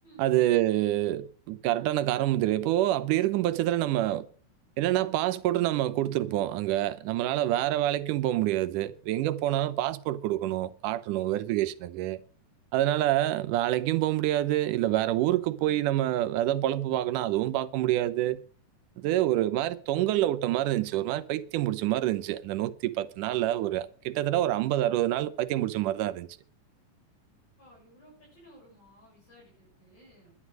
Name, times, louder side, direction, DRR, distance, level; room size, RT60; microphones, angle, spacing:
voice 1, 0.2-4.3 4.8-12.2 12.7-18.4 19.0-26.3, right 14 dB, 85° right, 2.3 m, -27 dB
voice 2, 27.6-30.4, right 1 dB, 50° left, 7.7 m, -56 dB
11.5 x 11.0 x 6.2 m
omnidirectional pair, 3.6 m